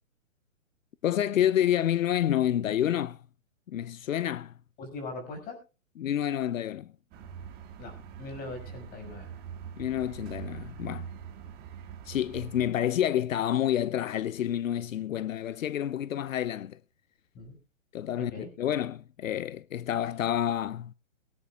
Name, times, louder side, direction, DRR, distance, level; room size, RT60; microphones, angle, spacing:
voice 1, 1.0-3.2 3.7-4.5 6.0-6.9 9.8-11.1 12.1-16.8 17.9-20.9, left 11 dB, 80° left, 0.7 m, -28 dB
voice 2, 4.8-5.6 7.8-7.9 8.2-9.3 17.3-17.6 18.2-18.5, left 3 dB, 25° left, 5.5 m, -40 dB
sound 1, 7.1-12.7, right 8 dB, 25° right, 2.2 m, -43 dB
23.0 x 9.7 x 2.4 m
hypercardioid pair, 145°, 39 cm